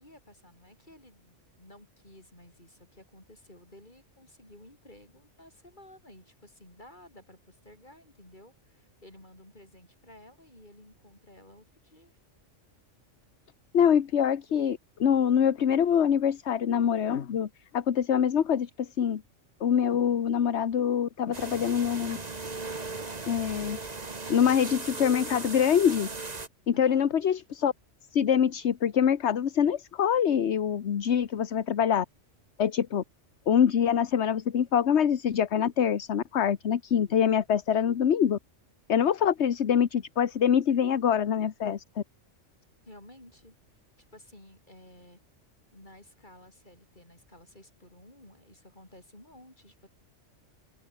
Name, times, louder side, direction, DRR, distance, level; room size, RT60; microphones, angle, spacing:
voice 1, 0.0-12.1 26.7-27.1 42.9-43.6 44.0-45.2 45.7-49.9, left 1 dB, 40° left, 7.8 m, -53 dB
voice 2, 13.7-17.5 17.7-19.2 19.6-22.2 23.3-23.8 24.3-26.1 26.7-27.7 28.1-32.0 32.6-33.0 33.5-38.4 38.9-42.0, left 8 dB, 65° left, 1.3 m, -25 dB
sound 1, 21.3-26.5, right 3 dB, 35° right, 1.8 m, -37 dB
open air
omnidirectional pair, 1.3 m